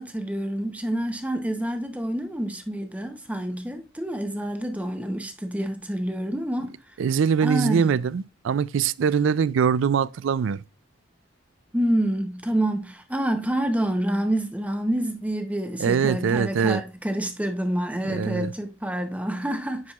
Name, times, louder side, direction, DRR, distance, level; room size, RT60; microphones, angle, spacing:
voice 1, 0.0-6.7 7.4-7.9 11.7-19.9, right 1 dB, 5° right, 0.7 m, -27 dB
voice 2, 7.0-10.6 15.8-16.8 18.0-18.5, right 7 dB, 70° right, 0.3 m, -23 dB
9.7 x 4.7 x 2.3 m
head